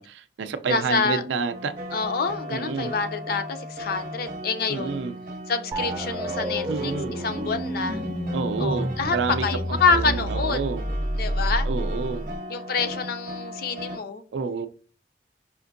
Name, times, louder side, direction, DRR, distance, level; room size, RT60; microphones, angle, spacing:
voice 1, 0.0-1.7 2.5-2.9 4.7-5.2 6.7-7.2 8.3-10.8 11.6-12.3 14.3-14.7, right 4 dB, 85° right, 0.4 m, -29 dB
voice 2, 0.7-1.2 1.9-4.9 5.5-6.9 7.2-8.0 8.6-9.2 9.4-10.6 11.2-11.7 12.5-14.2, left 4 dB, 55° left, 0.5 m, -26 dB
sound 1, 1.5-14.0, equal, 50° right, 0.7 m, -37 dB
sound 2, 5.7-12.4, right 1 dB, 20° right, 0.4 m, -29 dB
5.0 x 2.6 x 2.5 m
head